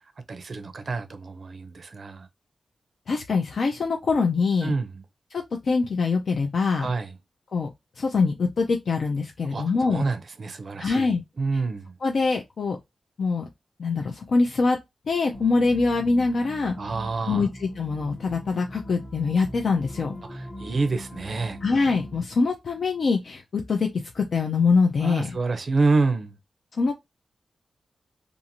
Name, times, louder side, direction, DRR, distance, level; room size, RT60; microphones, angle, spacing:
voice 1, 0.3-2.3 4.6-4.9 6.8-7.1 9.5-11.9 16.8-17.5 20.3-21.6 25.0-26.3, right 3 dB, 45° right, 0.5 m, -27 dB
voice 2, 3.1-4.7 5.3-6.9 7.5-7.7 8.0-10.0 10.8-11.2 12.0-12.8 13.2-13.5 13.8-14.8 15.1-16.7 17.3-20.1 21.6-23.9 24.1-25.4 26.8-26.9, left 4 dB, 60° left, 0.4 m, -24 dB
sound 1, 15.3-22.2, equal, 15° left, 0.6 m, -41 dB
2.6 x 2.4 x 2.7 m
wide cardioid pair, 155°, 0 cm